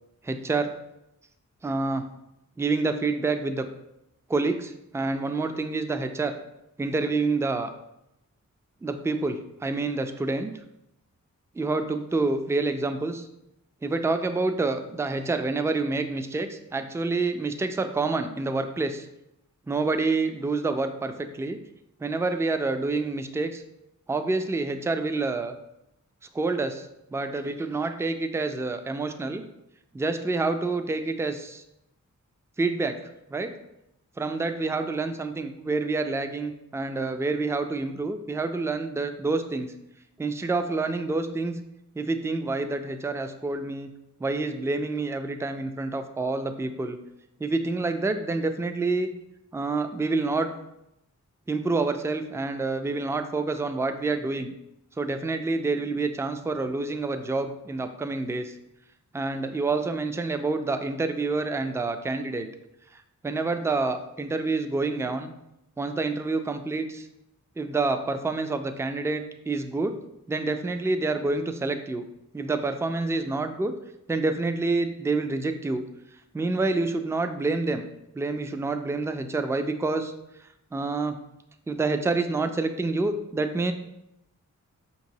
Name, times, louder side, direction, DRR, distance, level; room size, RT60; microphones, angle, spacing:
voice 1, 0.2-0.8 1.6-2.0 2.6-3.7 4.3-6.4 6.8-7.7 8.8-10.5 11.6-13.3 13.8-19.1 19.7-21.6 22.0-23.6 24.1-25.6 26.3-29.4 29.9-31.6 32.6-33.0 33.3-33.5 34.2-39.7 40.2-41.6 42.0-43.9 44.2-47.0 47.4-49.1 49.5-50.5 51.5-54.5 55.0-58.5 59.1-62.5 63.2-65.3 65.8-67.1 67.6-69.9 70.3-72.0 72.3-73.7 74.1-75.8 76.3-77.8 78.1-80.1 80.7-81.1 81.7-83.7, right 3 dB, 10° right, 8 dB, 0.3 m, -27 dB
5.1 x 2.9 x 2.7 m, 0.84 s
cardioid pair, 55°, 31 cm